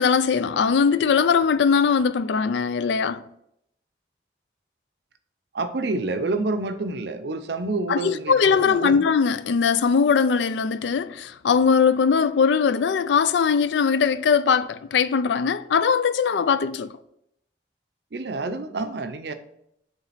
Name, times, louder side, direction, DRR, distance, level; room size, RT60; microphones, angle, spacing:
voice 1, 0.0-3.2 7.9-16.9, left 6 dB, 90° left, 0.4 m, -20 dB
voice 2, 5.5-9.0 18.1-19.3, right 3 dB, 75° right, 0.6 m, -28 dB
7.2 x 3.8 x 4.1 m
head